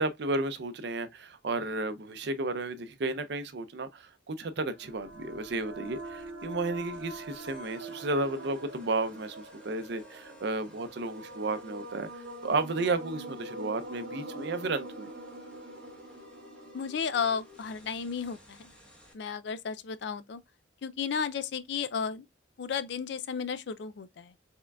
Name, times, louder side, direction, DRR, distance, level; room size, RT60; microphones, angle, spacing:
voice 1, 0.0-12.1 12.4-15.1, right 2 dB, 60° right, 0.5 m, -33 dB
sound 1, 4.7-18.3, right 2 dB, 85° right, 1.0 m, -44 dB
sound 2, 4.8-19.1, left 1 dB, 5° left, 1.1 m, -56 dB
voice 2, 16.7-18.7 19.1-20.4 20.8-22.2 22.6-24.3, left 6 dB, 65° left, 0.4 m, -33 dB
4.6 x 3.6 x 2.3 m
head